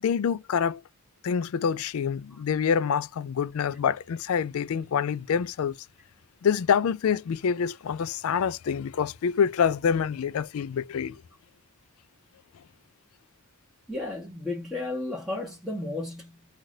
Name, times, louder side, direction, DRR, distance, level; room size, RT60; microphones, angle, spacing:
voice 1, 0.0-0.8 1.2-5.7 6.4-11.2, left 7 dB, 80° left, 0.4 m, -26 dB
voice 2, 13.9-16.4, left 2 dB, ahead, 1.1 m, -33 dB
2.8 x 2.5 x 3.1 m
head